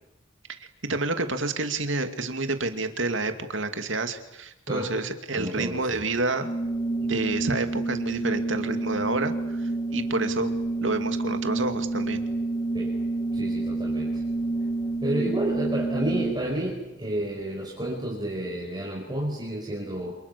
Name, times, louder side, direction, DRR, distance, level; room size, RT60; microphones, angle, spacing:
voice 1, 0.6-6.6 7.0-10.5 10.8-12.2, right 2 dB, 75° right, 7 dB, 2.7 m, -29 dB
voice 2, 5.3-6.1 12.7-12.9 13.3-14.2 15.0-20.2, right 1 dB, 20° right, -2 dB, 5.6 m, -31 dB
Organ, 6.4-16.6, right 2 dB, 20° left, 1.9 m, -28 dB
29.0 x 28.0 x 7.0 m, 0.89 s
head